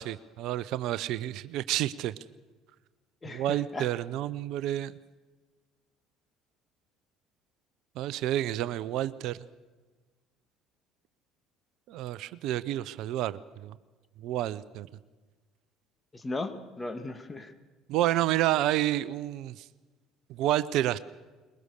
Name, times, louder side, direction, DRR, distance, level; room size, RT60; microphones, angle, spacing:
voice 1, 0.0-2.1 3.3-4.9 8.0-9.4 11.9-13.7 14.2-14.9 17.9-19.6 20.4-21.0, right 13 dB, 65° right, 17 dB, 0.6 m, -29 dB
voice 2, 3.2-3.9 16.1-17.5, left 2 dB, 25° left, 9 dB, 2.2 m, -37 dB
22.5 x 21.0 x 6.6 m, 1.3 s
hypercardioid pair, 60°, 0 cm